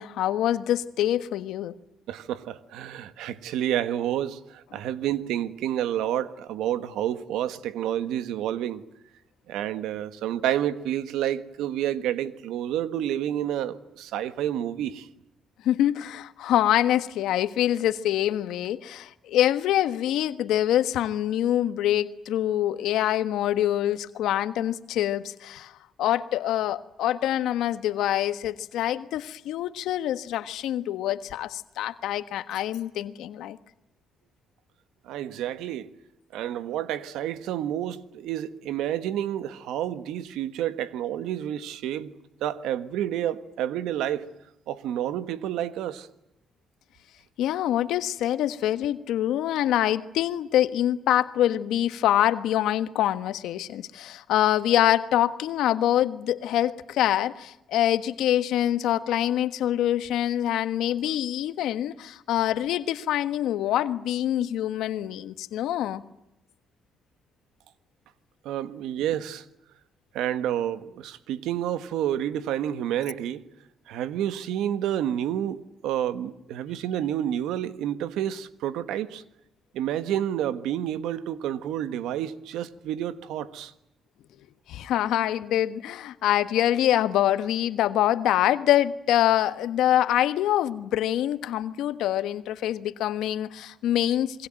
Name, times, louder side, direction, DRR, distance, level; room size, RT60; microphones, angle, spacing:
voice 1, 0.0-1.7 15.6-25.7 26.0-33.6 47.4-66.0 84.7-94.5, left 12 dB, 85° left, 1.4 m, -25 dB
voice 2, 2.1-8.8 9.5-15.1 35.0-35.9 36.3-42.1 42.4-44.3 44.7-46.1 68.4-69.4 70.1-73.4 73.9-79.2 79.7-83.7, right 11 dB, 90° right, 1.5 m, -29 dB
28.0 x 23.0 x 9.0 m
cardioid pair, 90°, 0 cm